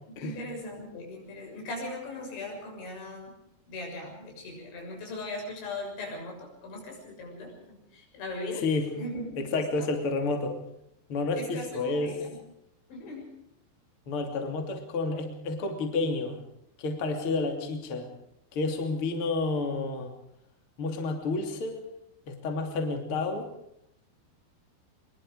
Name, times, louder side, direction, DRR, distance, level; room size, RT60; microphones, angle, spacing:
voice 1, 0.2-3.4 3.7-8.7 8.9-9.9 11.4-12.3 12.9-13.3, left 2 dB, 85° left, 1 dB, 9.2 m, -39 dB
voice 2, 9.4-10.6 11.1-12.2 14.1-16.4 16.8-18.1 18.5-20.1 20.8-21.9 22.3-23.5, left 3 dB, 35° left, 4 dB, 3.2 m, -30 dB
23.0 x 23.0 x 4.9 m, 0.79 s
omnidirectional pair, 5.1 m